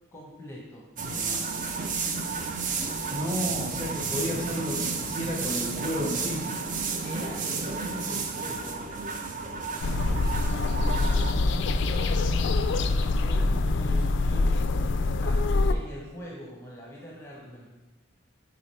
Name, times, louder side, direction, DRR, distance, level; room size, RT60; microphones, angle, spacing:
voice 1, 0.1-1.8 7.0-9.0 11.0-14.6 15.2-17.7, equal, 15° left, -4 dB, 0.9 m, -43 dB
sound 1, 1.0-11.3, right 4 dB, 40° right, 0.5 m, -32 dB
voice 2, 3.1-6.4, equal, 20° right, -5 dB, 1.4 m, -32 dB
sound 2, 9.8-15.7, left 3 dB, 60° left, 0.3 m, -24 dB
5.0 x 4.9 x 4.2 m, 1.1 s
head